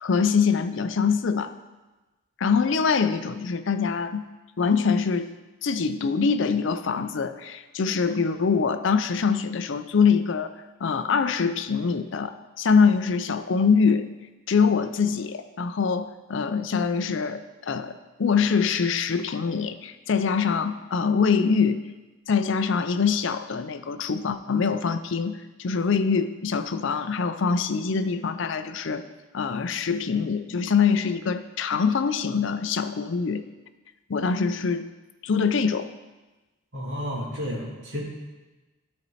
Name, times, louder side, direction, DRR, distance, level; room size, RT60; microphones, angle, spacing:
voice 1, 0.0-1.5 2.4-4.3 4.6-5.3 5.6-10.5 10.8-14.1 14.5-21.8 22.3-29.1 29.3-33.4 34.1-34.9 35.2-35.9, left 5 dB, 60° left, 10 dB, 0.4 m, -24 dB
voice 2, 36.7-38.0, equal, 55° right, -3 dB, 2.0 m, -31 dB
13.0 x 4.3 x 4.1 m, 1.2 s
head